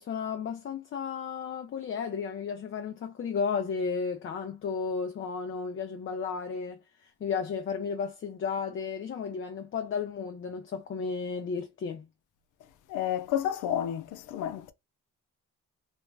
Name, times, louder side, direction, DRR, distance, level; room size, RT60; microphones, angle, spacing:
voice 1, 0.0-12.1, left 5 dB, 40° left, 0.6 m, -33 dB
voice 2, 12.9-14.7, left 10 dB, 90° left, 0.5 m, -30 dB
2.5 x 2.0 x 3.3 m
cardioid pair, 90°, 30 cm